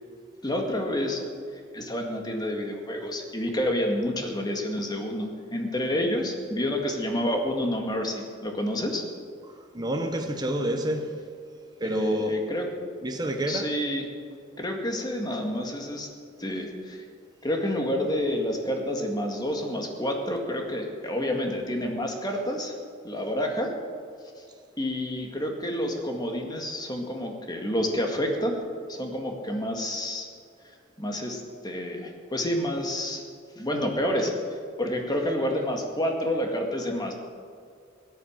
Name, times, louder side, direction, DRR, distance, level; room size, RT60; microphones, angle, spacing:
voice 1, 0.4-1.3 1.7-9.0 11.8-12.7 13.5-14.0 14.6-16.1 16.4-17.0 17.4-22.7 23.0-23.8 24.4-24.5 24.8-28.6 28.9-30.3 31.0-33.2 33.6-34.3 34.8-37.1, left 1 dB, 20° left, 2 dB, 1.9 m, -29 dB
voice 2, 9.7-11.1 11.8-12.4 13.0-13.7, right 1 dB, 20° right, 4 dB, 1.1 m, -28 dB
16.0 x 10.5 x 7.3 m, 2.3 s
head